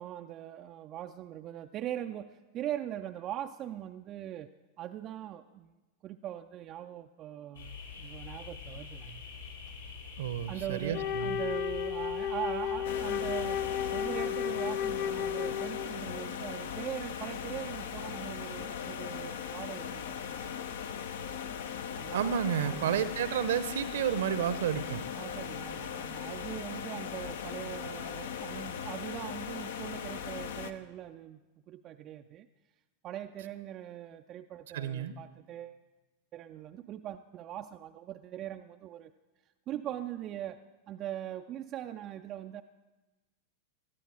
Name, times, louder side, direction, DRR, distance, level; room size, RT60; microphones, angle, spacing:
voice 1, 0.0-4.5 4.8-5.7 6.0-9.3 10.5-13.7 13.9-20.5 22.0-22.4 22.6-23.1 25.2-31.4 31.7-32.5 33.0-35.8 36.3-39.1 39.7-40.6 40.9-42.6, right 11 dB, 35° right, 6 dB, 0.5 m, -41 dB
sound 1, 7.5-14.1, left 5 dB, 80° left, 4.9 m, -45 dB
voice 2, 10.2-11.4 22.1-25.0 34.7-35.1, right 8 dB, 60° right, 14 dB, 0.9 m, -31 dB
Wind instrument woodwind instrument, 10.9-16.1, left 9 dB, 35° left, 0.4 m, -33 dB
sound 2, 12.8-30.7, left 8 dB, 60° left, 0.8 m, -39 dB
19.5 x 13.0 x 4.8 m, 1.2 s
figure-of-eight pair, 90°, 0 cm